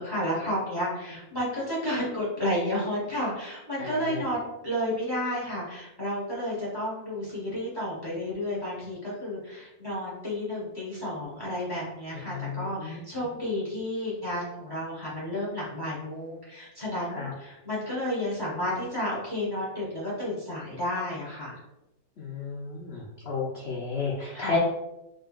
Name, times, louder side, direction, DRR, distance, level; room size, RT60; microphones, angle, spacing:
voice 1, 0.0-21.6 24.3-24.6, left 1 dB, 15° right, -5 dB, 1.3 m, -31 dB
voice 2, 12.3-13.0 17.2-17.3 22.2-23.0 23.3-24.6, left 4 dB, 65° left, -4 dB, 0.6 m, -32 dB
3.7 x 3.6 x 2.5 m, 0.92 s
omnidirectional pair, 1.9 m